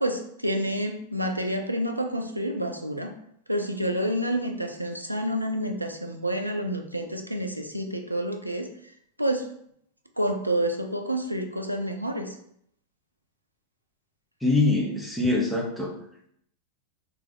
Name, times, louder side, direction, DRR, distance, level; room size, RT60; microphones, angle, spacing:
voice 1, 0.0-3.1 3.5-8.7 9.2-9.5 10.2-12.4, right 1 dB, 85° right, 4 dB, 0.5 m, -28 dB
voice 2, 14.4-15.9, left 2 dB, 5° left, -2 dB, 1.1 m, -24 dB
3.4 x 3.3 x 3.7 m, 0.71 s
figure-of-eight pair, 90°, 0 cm